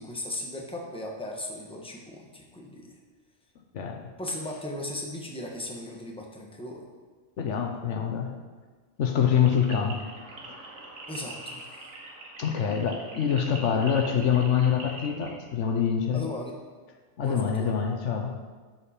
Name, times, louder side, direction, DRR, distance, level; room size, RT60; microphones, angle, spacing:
voice 1, 0.0-2.9 4.2-6.9 11.1-11.9 16.1-16.6 17.2-17.7, left 1 dB, 5° left, -1 dB, 1.1 m, -37 dB
voice 2, 7.4-8.3 9.0-10.1 12.4-16.2 17.2-18.4, left 7 dB, 80° left, 4 dB, 1.2 m, -25 dB
sound 1, 9.4-15.4, right 2 dB, 85° right, 1.8 m, -43 dB
13.0 x 5.2 x 4.4 m, 1.4 s
omnidirectional pair, 1.2 m